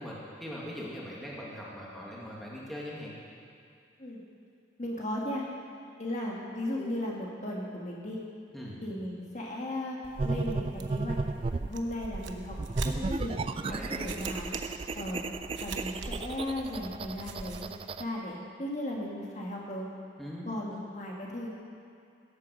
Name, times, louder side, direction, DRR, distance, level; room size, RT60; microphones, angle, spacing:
voice 1, 0.0-3.1 8.5-8.8 13.7-14.1 20.2-20.8, equal, ahead, -6 dB, 1.9 m, -41 dB
voice 2, 4.8-5.4 6.0-8.2 8.8-10.0 10.2-11.2 11.7-12.6 12.8-13.4 13.7-14.5 14.9-15.2 15.6-17.7 18.0-19.9 20.4-21.5, left 1 dB, 40° left, -3 dB, 1.6 m, -36 dB
sound 1, 10.0-17.6, right 3 dB, 80° right, 0.9 m, -43 dB
sound 2, 10.2-11.8 12.5-18.0, right 3 dB, 30° right, 0.3 m, -34 dB
16.0 x 8.5 x 6.5 m, 2.4 s
head